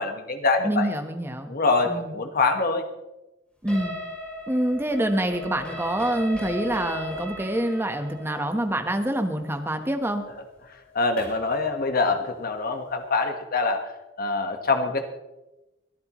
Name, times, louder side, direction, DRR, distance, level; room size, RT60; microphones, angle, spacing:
voice 1, 0.0-0.9 1.5-2.8 10.9-13.8 14.2-15.0, left 3 dB, 50° left, 6 dB, 1.5 m, -24 dB
voice 2, 0.6-1.5 1.8-2.1 3.6-3.9 4.5-10.2, right 1 dB, 10° right, 5 dB, 1.3 m, -26 dB
sound 1, 3.7-11.5, equal, 5° left, 6.6 m, -37 dB
23.5 x 14.0 x 3.2 m, 1.0 s
head